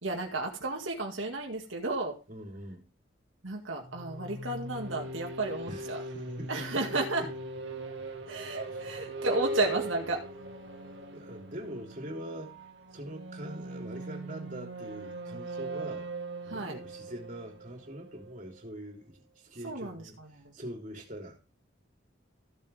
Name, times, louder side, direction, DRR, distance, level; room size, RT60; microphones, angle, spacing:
voice 1, 0.0-2.2 3.4-6.0 6.5-7.3 8.3-10.2 16.5-16.8 19.6-20.5, right 2 dB, 90° right, 2.0 m, -33 dB
voice 2, 2.3-2.8 5.7-6.6 8.7-8.8 11.1-12.5 12.9-16.1 16.4-20.2 20.5-21.4, right 1 dB, 40° right, 3.4 m, -43 dB
sound 1, 3.8-18.4, right 1 dB, 70° right, 2.2 m, -40 dB
15.0 x 7.3 x 3.5 m
head